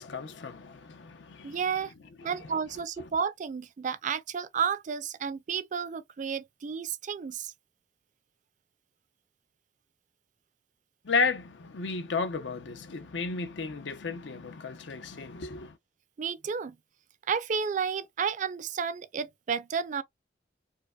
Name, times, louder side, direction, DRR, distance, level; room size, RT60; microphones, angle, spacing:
voice 1, 0.0-1.6 2.2-2.3 11.0-15.8, left 4 dB, 80° left, 0.6 m, -33 dB
voice 2, 1.4-1.9 2.2-7.5 16.2-16.8 17.3-20.0, right 6 dB, 45° right, 0.4 m, -32 dB
4.6 x 2.1 x 2.2 m
head